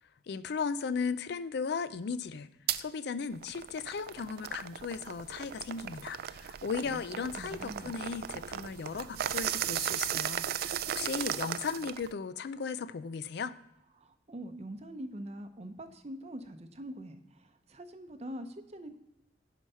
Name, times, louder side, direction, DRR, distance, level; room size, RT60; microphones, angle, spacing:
voice 1, 0.3-2.5 2.8-13.5, left 5 dB, 60° left, 14 dB, 0.4 m, -36 dB
sound 1, 2.7-2.8 3.3-12.1, right 10 dB, 55° right, 0.3 m, -36 dB
voice 2, 6.8-7.9 14.0-19.0, right 1 dB, 35° right, 8 dB, 0.7 m, -44 dB
11.0 x 4.8 x 5.5 m, 0.86 s
head